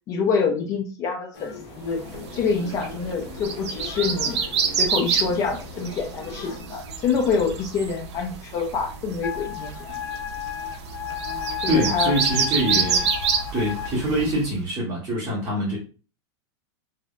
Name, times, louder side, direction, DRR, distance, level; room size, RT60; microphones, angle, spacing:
voice 1, 0.1-2.0 2.3-4.4 4.8-10.0 11.6-12.1 12.7-12.9, left 5 dB, 20° left, 3 dB, 0.4 m, -26 dB
sound 1, 1.3-6.6, left 2 dB, 40° left, 1.2 m, -39 dB
sound 2, 2.0-14.5, right 6 dB, 75° right, 0.5 m, -28 dB
Wind instrument woodwind instrument, 9.2-13.9, left 11 dB, 65° left, 0.8 m, -33 dB
voice 2, 11.7-13.1 13.5-15.8, right 1 dB, 10° right, -8 dB, 0.8 m, -24 dB
3.2 x 2.0 x 2.3 m, 0.37 s
supercardioid pair, 165°, 14 cm